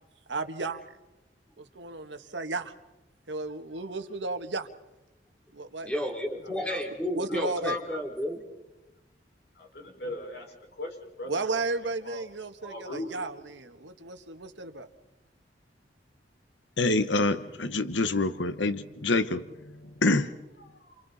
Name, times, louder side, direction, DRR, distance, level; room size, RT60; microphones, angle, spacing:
voice 1, 0.3-0.8 1.6-2.7 3.3-4.7 5.5-5.9 7.1-7.8 11.3-14.9, right 3 dB, 85° right, 8 dB, 1.6 m, -34 dB
voice 2, 5.8-8.4, left 1 dB, 5° left, 2 dB, 3.4 m, -32 dB
voice 3, 9.6-12.2 12.6-13.3 20.6-21.0, left 1 dB, 65° left, 1 dB, 5.4 m, -41 dB
voice 4, 16.8-19.5 20.0-20.3, left 2 dB, 90° left, 11 dB, 1.1 m, -26 dB
29.5 x 28.0 x 4.2 m, 1.0 s
head